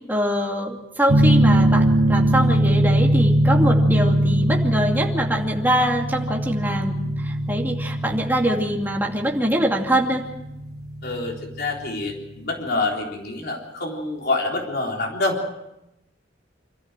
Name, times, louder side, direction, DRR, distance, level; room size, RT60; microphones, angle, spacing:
voice 1, 0.1-10.2, equal, 10° right, 0 dB, 2.5 m, -23 dB
sound 1, 1.1-12.3, right 1 dB, 60° right, 1.5 m, -21 dB
voice 2, 11.0-15.5, left 2 dB, 55° left, 0 dB, 3.8 m, -26 dB
26.0 x 14.0 x 7.5 m, 0.88 s
head